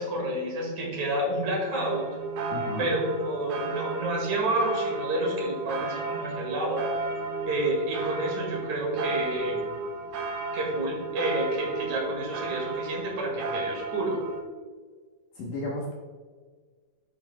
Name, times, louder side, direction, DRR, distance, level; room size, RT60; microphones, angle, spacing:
voice 1, 0.0-2.0 2.8-6.8 7.5-9.7 10.5-14.2, right 1 dB, 55° right, -1 dB, 2.7 m, -29 dB
sound 1, 1.7-14.4, right 3 dB, 75° right, 1.8 m, -33 dB
voice 2, 2.5-2.9 15.4-15.9, left 1 dB, 65° left, -3 dB, 2.2 m, -33 dB
10.5 x 8.0 x 2.2 m, 1.5 s
omnidirectional pair, 4.7 m